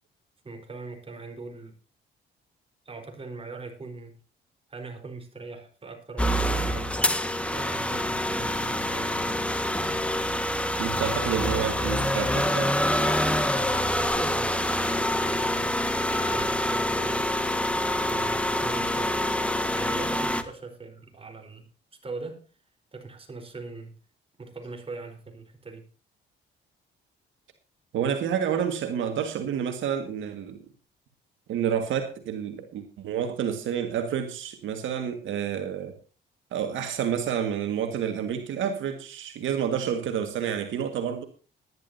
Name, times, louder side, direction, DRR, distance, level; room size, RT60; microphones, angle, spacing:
voice 1, 0.4-1.7 2.8-4.2 4.7-7.1 7.5-9.4 14.0-17.3 18.0-19.3 19.7-21.7 22.0-22.4 22.9-24.0 24.4-25.8, right 3 dB, 30° right, 4 dB, 4.3 m, -40 dB
sound 1, 6.2-20.4, left 1 dB, 5° left, 1.5 m, -26 dB
voice 2, 10.8-12.7 27.9-30.7 31.5-36.0 36.5-41.2, right 8 dB, 80° right, 6 dB, 1.8 m, -29 dB
19.0 x 11.0 x 2.7 m, 0.36 s
cardioid pair, 90°, 20 cm